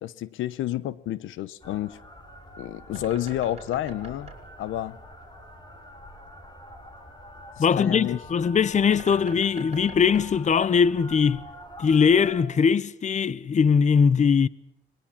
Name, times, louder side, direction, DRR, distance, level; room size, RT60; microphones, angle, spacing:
voice 1, 0.0-2.0 2.6-4.3 4.6-5.0 7.6-8.2, left 13 dB, 85° left, 0.9 m, -30 dB
sound 1, 1.6-12.4, left 1 dB, 20° left, 4.5 m, -45 dB
Bird, 2.1-11.3, right 4 dB, 30° right, 4.9 m, -47 dB
voice 2, 7.6-11.4 11.8-14.5, left 6 dB, 35° left, 0.8 m, -21 dB
26.0 x 21.0 x 7.3 m
cardioid pair, 90°, 20 cm